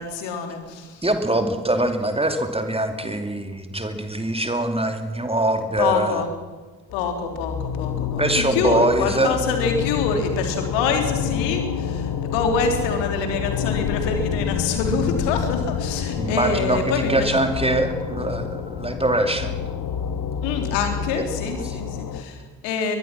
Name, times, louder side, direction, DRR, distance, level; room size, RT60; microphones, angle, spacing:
voice 1, 0.0-1.0 5.8-6.3 6.9-17.3 20.4-23.0, left 5 dB, 65° left, 5 dB, 3.6 m, -26 dB
voice 2, 1.0-6.2 8.2-9.4 16.2-19.6 21.1-21.2 21.6-21.8, right 1 dB, 10° right, 6 dB, 2.7 m, -23 dB
sound 1, 6.9-22.2, left 7 dB, 45° left, 1.9 m, -28 dB
23.0 x 21.0 x 6.0 m, 1.3 s
figure-of-eight pair, 45°, 47 cm